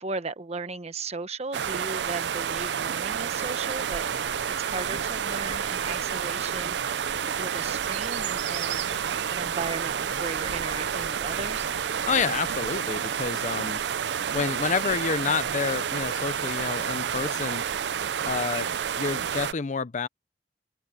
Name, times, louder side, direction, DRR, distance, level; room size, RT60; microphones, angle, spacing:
voice 1, 0.0-6.8 7.4-8.9 9.3-11.7, right 3 dB, 40° right, 1.2 m, -36 dB
sound 1, 1.5-19.5, right 8 dB, 70° right, 0.5 m, -29 dB
sound 2, 4.1-12.8, left 2 dB, 85° left, 1.2 m, -48 dB
voice 2, 12.1-13.8 14.3-17.7 18.3-18.7 19.0-20.1, left 5 dB, 45° left, 0.5 m, -29 dB
head